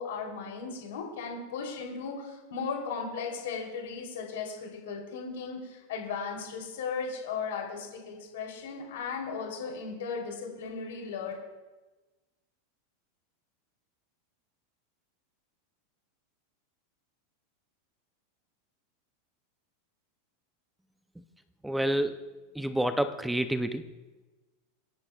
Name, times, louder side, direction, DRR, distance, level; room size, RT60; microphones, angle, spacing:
voice 1, 0.0-11.3, left 5 dB, 80° left, 1 dB, 3.0 m, -36 dB
voice 2, 21.6-22.2 22.6-23.8, right 1 dB, ahead, 9 dB, 0.4 m, -28 dB
27.5 x 11.0 x 2.3 m, 1.2 s
supercardioid pair, 170°, 0 cm